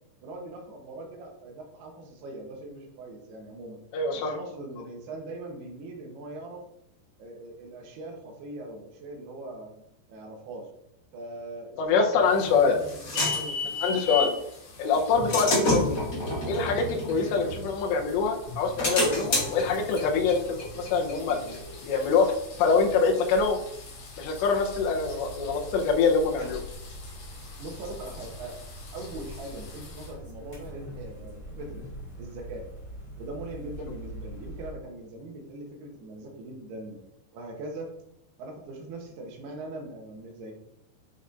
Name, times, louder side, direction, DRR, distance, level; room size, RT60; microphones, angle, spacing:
voice 1, 0.2-3.8 4.1-6.6 7.2-9.7 10.1-10.7 11.1-14.0 17.2-17.4 27.6-28.6 28.9-31.8 32.2-32.7 33.2-37.0 37.3-37.9 38.4-40.5, right 2 dB, 75° right, 1 dB, 2.8 m, -41 dB
voice 2, 3.9-4.3 11.8-12.8 13.8-14.3 14.8-16.0 16.5-21.4 21.8-22.3 22.6-23.6 24.2-26.6, left 5 dB, 80° left, 2 dB, 3.1 m, -24 dB
sound 1, 12.2-30.2, left 3 dB, 65° left, 4.2 m, -49 dB
sound 2, 12.2-14.4 14.9-18.0 18.4-21.9, left 2 dB, 45° left, 1.5 m, -29 dB
sound 3, 17.4-34.7, equal, 10° left, 2.1 m, -44 dB
10.5 x 5.5 x 2.6 m, 0.78 s
omnidirectional pair, 5.1 m